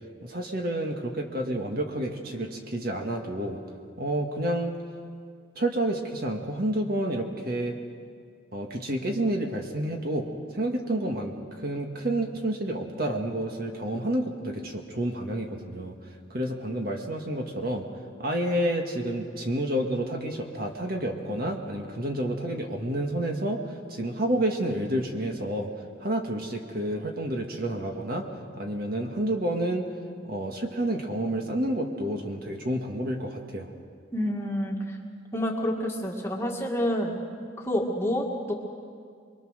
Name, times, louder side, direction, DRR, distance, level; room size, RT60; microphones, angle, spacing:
voice 1, 0.2-3.6 4.0-4.7 5.6-7.8 8.5-10.3 10.5-11.3 11.6-15.9 16.3-17.9 18.2-23.6 23.9-25.7 26.0-28.3 28.6-29.9 30.2-33.7, right 1 dB, 45° right, 3 dB, 1.8 m, -29 dB
voice 2, 34.1-35.0 35.3-37.2 37.6-38.5, equal, 15° left, 0 dB, 1.8 m, -28 dB
24.0 x 23.0 x 6.5 m, 2.2 s
head